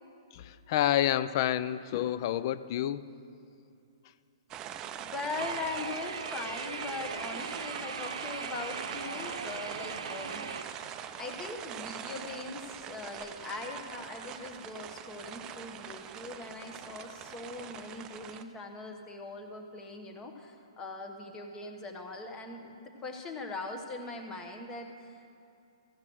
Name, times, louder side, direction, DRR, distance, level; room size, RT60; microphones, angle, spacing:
voice 1, 0.3-3.1, left 12 dB, 45° left, 15 dB, 0.4 m, -29 dB
sound 1, 4.5-18.4, right 9 dB, 25° right, 0.4 m, -43 dB
voice 2, 5.0-10.4 10.8-25.3, left 3 dB, 20° left, 4 dB, 1.2 m, -41 dB
sound 2, 5.4-10.6, right 5 dB, 80° right, 0.7 m, -39 dB
14.5 x 5.6 x 6.3 m, 2.7 s
hypercardioid pair, 125°, 3 cm